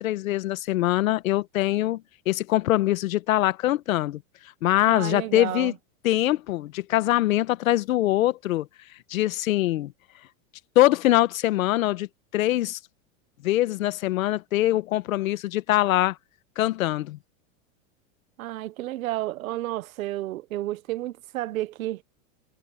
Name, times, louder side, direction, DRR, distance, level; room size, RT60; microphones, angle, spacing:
voice 1, 0.0-2.0 2.3-4.2 4.6-5.7 6.0-8.7 9.1-9.9 10.7-12.1 12.3-12.8 13.4-16.2 16.6-17.2, left 15 dB, 90° left, 1.2 m, -23 dB
voice 2, 4.9-5.7 18.4-22.0, right 15 dB, 85° right, 1.0 m, -31 dB
supercardioid pair, 175°, 40 cm